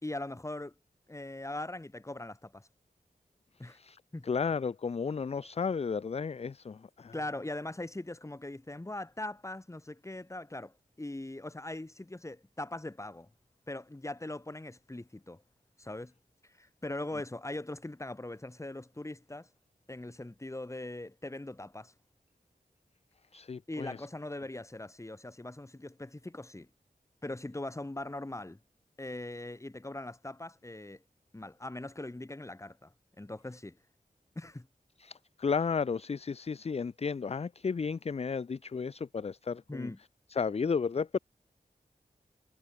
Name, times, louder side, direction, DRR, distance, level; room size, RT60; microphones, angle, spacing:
voice 1, 0.0-0.7 1.1-2.7 3.6-3.8 4.1-4.3 7.1-13.3 13.7-15.4 15.8-16.1 16.5-19.5 19.9-21.9 23.7-26.7 27.2-28.6 29.0-31.0 31.3-33.8 34.3-34.7 39.7-40.0, left 2 dB, 20° left, 1.3 m, -41 dB
voice 2, 3.7-7.2 23.3-24.0 35.0-39.9 40.3-41.2, left 5 dB, 40° left, 0.4 m, -33 dB
wide cardioid pair, 85°, 16 cm